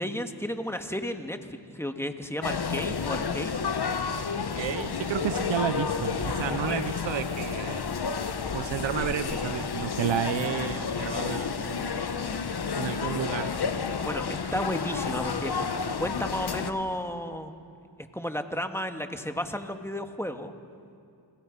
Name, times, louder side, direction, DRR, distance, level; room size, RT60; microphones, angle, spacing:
voice 1, 0.0-3.5 6.6-6.8 14.0-15.5 16.0-17.5 18.1-20.5, equal, 5° left, 6 dB, 1.8 m, -33 dB
sound 1, 2.4-16.7, left 5 dB, 60° left, 1.2 m, -31 dB
voice 2, 4.4-7.8 8.5-12.0 12.8-13.5, right 9 dB, 80° right, 13 dB, 0.8 m, -31 dB
30.0 x 17.0 x 5.4 m, 2.5 s
cardioid pair, 40°, 44 cm